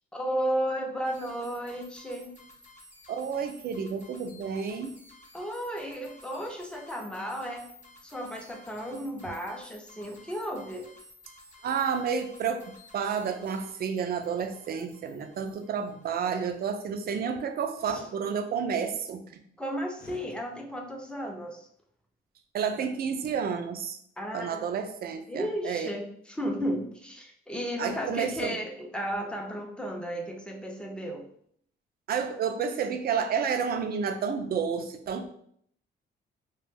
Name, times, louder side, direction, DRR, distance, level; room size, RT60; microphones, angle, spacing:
voice 1, 0.1-2.4 5.3-7.7 8.0-10.9 17.9-18.1 19.6-21.7 24.2-24.7 25.3-31.2, equal, 5° left, 1 dB, 0.5 m, -34 dB
sound 1, 1.0-16.9, left 2 dB, 35° left, 0.8 m, -54 dB
voice 2, 3.1-4.9 11.6-19.4 22.5-24.0 24.3-25.9 27.8-28.6 32.1-35.3, right 6 dB, 50° right, 7 dB, 0.4 m, -30 dB
sound 2, 17.8-18.1 19.9-20.3, left 3 dB, 55° left, 0.5 m, -48 dB
2.3 x 2.1 x 3.2 m, 0.66 s
cardioid pair, 90°, 20 cm